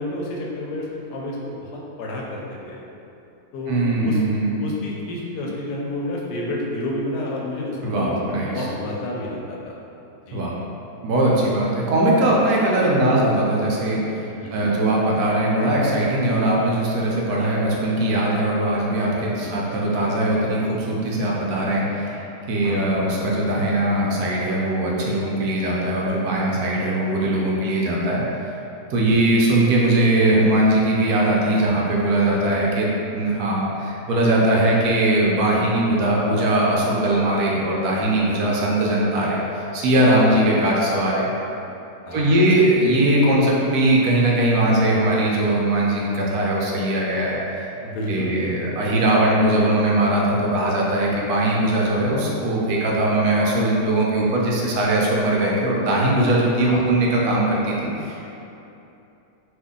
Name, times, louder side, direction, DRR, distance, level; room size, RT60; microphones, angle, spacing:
voice 1, 0.0-2.8 3.5-4.2 4.6-9.8 10.3-10.5 11.4-11.6 14.3-14.8 19.4-19.6 22.6-22.9 27.2-27.5 28.9-29.3 32.4-32.7 37.7-37.8 42.1-42.4 47.8-48.4 56.6-56.9, left 1 dB, 90° left, -3 dB, 1.2 m, -30 dB
voice 2, 3.7-4.5 7.8-8.7 10.3-10.5 11.0-14.0 14.5-22.2 22.5-28.2 28.9-39.4 39.7-41.3 42.1-47.7 48.1-58.3, right 1 dB, 75° right, -4 dB, 1.0 m, -20 dB
2.8 x 2.6 x 3.6 m, 2.9 s
omnidirectional pair, 1.7 m